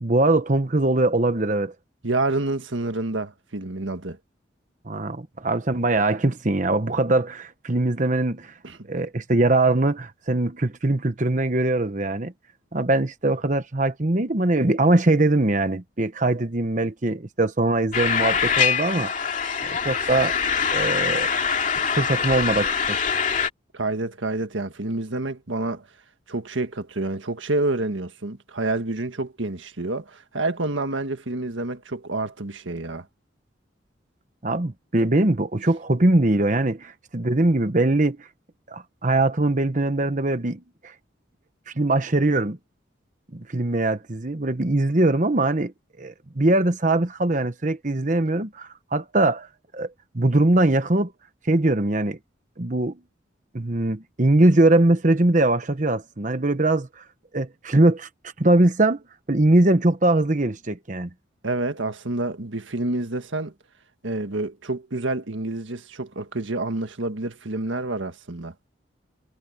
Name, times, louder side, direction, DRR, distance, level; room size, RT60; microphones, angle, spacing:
voice 1, 0.0-1.7 4.9-8.5 8.9-12.3 12.7-19.1 19.6-20.4 20.7-21.3 21.9-23.0 34.4-38.3 38.7-40.9 41.7-42.6 43.3-45.7 46.0-49.5 49.7-49.9 50.1-51.1 51.4-52.2 52.6-53.0 53.5-57.0 57.3-58.1 58.4-59.0 59.3-61.1, right 2 dB, 40° right, 1.1 m, -21 dB
voice 2, 2.0-4.2 8.6-8.8 23.7-25.9 26.3-33.0 61.4-63.5 64.0-68.5, right 2 dB, 90° right, 1.7 m, -28 dB
sound 1, 17.9-23.5, left 6 dB, 45° left, 2.6 m, -24 dB
head